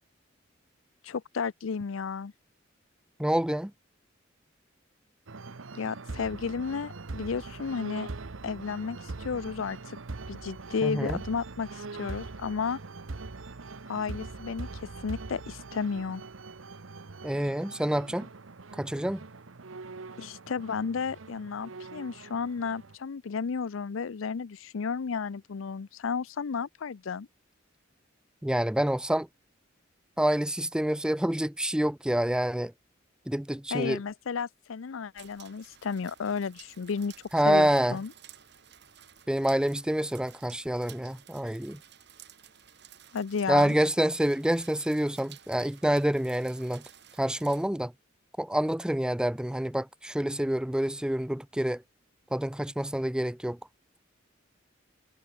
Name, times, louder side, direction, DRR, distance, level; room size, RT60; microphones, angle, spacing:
voice 1, 1.0-2.3 5.7-8.1 8.4-10.0 10.3-12.8 13.9-16.2 20.2-27.3 33.7-37.1 37.5-38.1 43.1-43.7, left 5 dB, 85° left, 0.5 m, -33 dB
voice 2, 3.2-3.7 10.8-11.2 17.2-18.3 18.8-19.2 28.4-29.3 30.2-32.7 33.3-34.0 37.3-38.0 39.3-41.8 43.5-46.8 47.2-47.9 48.4-51.8 52.3-53.6, right 1 dB, 5° right, 0.5 m, -27 dB
sound 1, 5.3-22.9, right 3 dB, 85° right, 1.0 m, -42 dB
sound 2, 35.2-47.7, right 10 dB, 60° right, 3.3 m, -54 dB
head